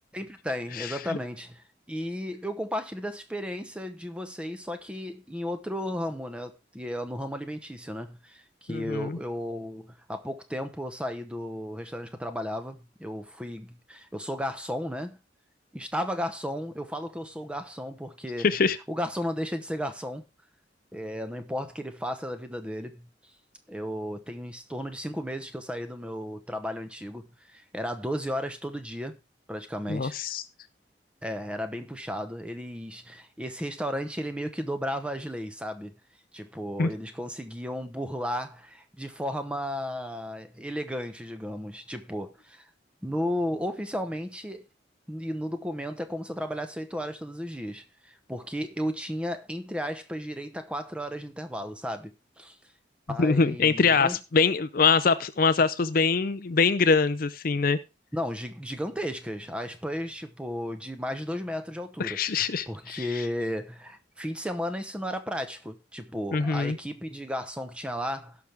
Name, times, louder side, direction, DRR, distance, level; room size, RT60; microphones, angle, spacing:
voice 1, 0.1-15.2 15.7-18.5 18.9-20.2 20.9-23.1 23.7-29.2 29.5-30.2 31.2-35.9 36.3-42.7 43.0-44.7 45.1-52.1 52.4-52.6 53.1-54.2 58.1-68.4, equal, 5° right, 1.0 m, -34 dB
voice 2, 0.8-1.2 8.7-9.2 18.4-18.8 29.9-30.4 36.8-36.9 53.2-57.8 62.0-63.0 66.3-66.8, left 4 dB, 50° left, 0.5 m, -24 dB
16.5 x 6.0 x 3.5 m
head